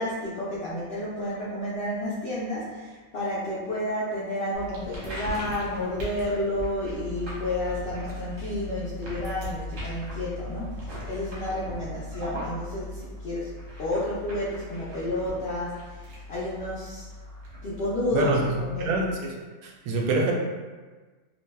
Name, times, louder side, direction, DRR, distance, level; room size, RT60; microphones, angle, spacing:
voice 1, 0.0-13.5 13.8-17.0 17.6-19.0, left 1 dB, 60° left, -9 dB, 0.7 m, -31 dB
sound 1, 4.5-19.2, left 1 dB, 65° right, 1.3 m, -38 dB
voice 2, 18.1-19.3 19.6-20.3, right 2 dB, 85° right, 0 dB, 1.0 m, -26 dB
3.2 x 2.6 x 2.2 m, 1.3 s
omnidirectional pair, 1.5 m